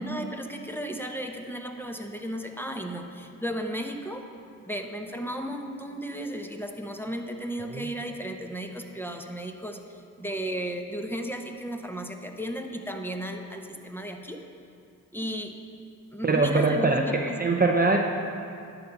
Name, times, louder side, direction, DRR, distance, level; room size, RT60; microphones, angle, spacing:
voice 1, 0.0-4.2 4.7-14.4 15.1-15.5 16.1-17.4, equal, 5° left, 3 dB, 1.0 m, -34 dB
voice 2, 16.2-18.0, right 3 dB, 25° right, 2 dB, 0.7 m, -23 dB
11.0 x 4.0 x 7.0 m, 2.4 s
supercardioid pair, 45°, 40 cm